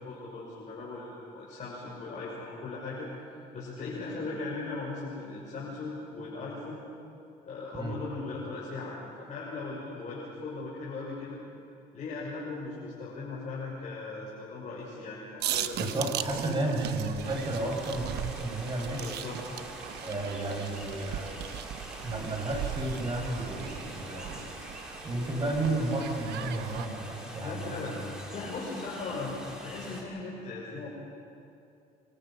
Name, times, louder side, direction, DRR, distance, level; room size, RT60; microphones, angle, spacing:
voice 1, 0.0-3.1 3.5-6.8 7.4-11.4 11.9-16.0 19.0-19.6 27.4-27.9 28.3-29.3 29.6-30.9, left 3 dB, 45° left, -6 dB, 6.2 m, -38 dB
sound 1, 15.4-26.9, right 11 dB, 75° right, 1.1 m, -39 dB
voice 2, 15.8-19.2 20.0-21.4 22.0-24.5 25.0-28.0, right 2 dB, 30° right, 0 dB, 7.3 m, -32 dB
sound 2, 17.2-30.0, equal, 5° right, 5.3 m, -45 dB
26.0 x 25.5 x 5.9 m, 2.6 s
cardioid pair, 110°, 17 cm